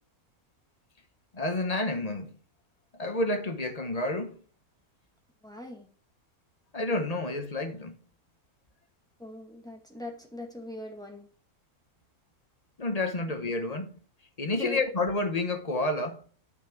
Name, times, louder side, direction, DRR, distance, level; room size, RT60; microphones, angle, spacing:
voice 1, 1.3-2.4 2.9-4.4 6.7-8.0 12.8-14.0 14.4-16.2, left 2 dB, 30° left, 1.1 m, -30 dB
voice 2, 5.4-5.9 9.2-11.3 14.6-14.8, left 2 dB, 5° left, 1.9 m, -40 dB
9.7 x 5.8 x 4.5 m
omnidirectional pair, 1.6 m